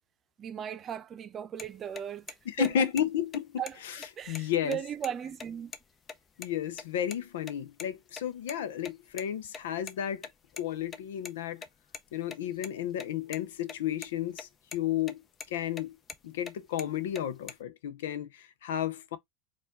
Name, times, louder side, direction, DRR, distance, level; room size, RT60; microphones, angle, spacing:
voice 1, 0.4-2.9 3.6-3.8 4.2-5.7, right 9 dB, 35° right, 0.7 m, -37 dB
sound 1, 1.6-1.7 2.0-2.1 2.3-2.4 2.6-3.0 3.3-3.4 3.7-3.8 4.0-5.1 5.4-5.5 5.7-5.8 6.1-6.5 6.8-7.2 7.5-8.5 8.8-11.3 11.6-13.4 13.7-13.8 14.0-14.4 14.7-15.1 15.4-16.5 16.8-17.5, left 5 dB, 30° left, 0.6 m, -43 dB
voice 2, 2.6-4.0 4.3-4.8 6.4-10.2 10.6-11.6 12.1-15.2 15.5-16.0 16.2-19.2, left 9 dB, 85° left, 0.7 m, -32 dB
4.2 x 2.5 x 3.6 m
hypercardioid pair, 105°, 0 cm